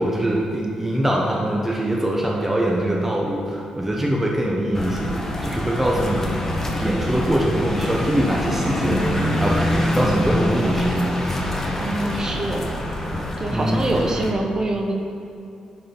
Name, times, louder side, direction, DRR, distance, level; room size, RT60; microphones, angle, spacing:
voice 1, 0.0-6.4 6.8-11.0 13.5-13.8, right 1 dB, 10° right, -2 dB, 0.9 m, -23 dB
sound 1, 4.7-14.3, left 1 dB, 20° left, 1.4 m, -25 dB
voice 2, 11.8-12.7 13.4-14.9, right 1 dB, 30° right, 2 dB, 1.2 m, -24 dB
11.5 x 4.2 x 5.3 m, 2.8 s
cardioid pair, 85°, 2 cm